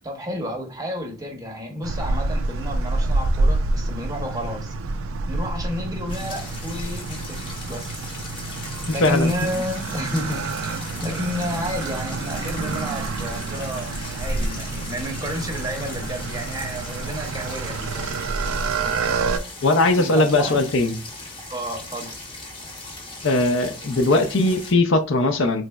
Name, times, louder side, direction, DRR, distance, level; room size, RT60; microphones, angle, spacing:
voice 1, 0.0-4.7 5.3-8.0 8.9-18.1 20.0-20.7 21.5-22.2, equal, 15° right, 0.7 m, -31 dB
sound 1, 1.8-19.4, right 3 dB, 70° right, 0.4 m, -28 dB
sound 2, 6.1-24.7, left 2 dB, 25° left, 0.9 m, -38 dB
voice 2, 9.0-9.3 19.6-21.0 23.2-25.6, left 2 dB, 55° left, 0.5 m, -19 dB
3.9 x 3.1 x 2.3 m
head